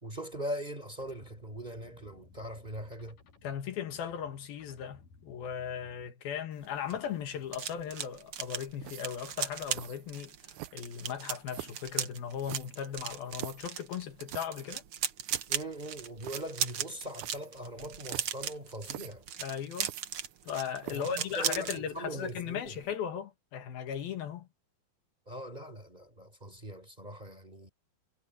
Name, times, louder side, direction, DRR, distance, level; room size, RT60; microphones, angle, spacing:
voice 1, 0.0-3.2 15.5-19.2 20.9-22.8 25.3-27.7, right 1 dB, 10° right, 3.8 m, -41 dB
sound 1, 1.0-6.1, left 4 dB, 60° left, 4.2 m, -59 dB
voice 2, 3.4-14.8 19.4-19.9 20.5-24.5, left 8 dB, 75° left, 3.6 m, -37 dB
sound 2, 6.6-21.8 22.1-22.4 22.7-22.9, right 9 dB, 70° right, 1.3 m, -37 dB
sound 3, 8.8-9.2 9.7-10.0 10.5-11.0 11.5-11.9 12.4-13.7 14.3-14.7 15.0-15.1 15.2-15.5 16.2-16.4 17.1-17.5 18.0-18.5 18.8-19.1 19.8-20.5 20.8-21.2, right 17 dB, 90° right, 1.7 m, -44 dB
omnidirectional pair, 4.3 m